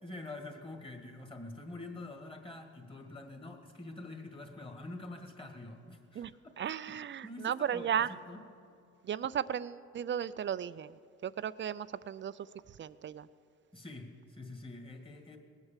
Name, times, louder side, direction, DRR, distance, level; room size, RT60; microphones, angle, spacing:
voice 1, 0.0-6.5 6.9-8.4 13.7-15.4, left 2 dB, 15° left, 4 dB, 1.9 m, -46 dB
voice 2, 6.6-8.1 9.1-10.9 11.2-12.3 12.8-13.3, right 9 dB, 40° right, 16 dB, 0.4 m, -35 dB
19.0 x 8.1 x 7.4 m, 2.5 s
cardioid pair, 90°, 30 cm